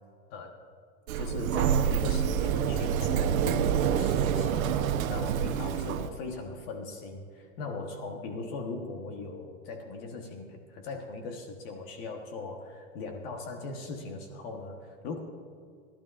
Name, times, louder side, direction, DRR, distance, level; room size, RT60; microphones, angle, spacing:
voice 1, 1.1-15.2, left 3 dB, 45° left, 3 dB, 1.3 m, -39 dB
Sliding door, 1.1-6.1, right 8 dB, 90° right, 1.0 m, -27 dB
28.0 x 12.0 x 2.5 m, 2.3 s
supercardioid pair, 160°, 40 cm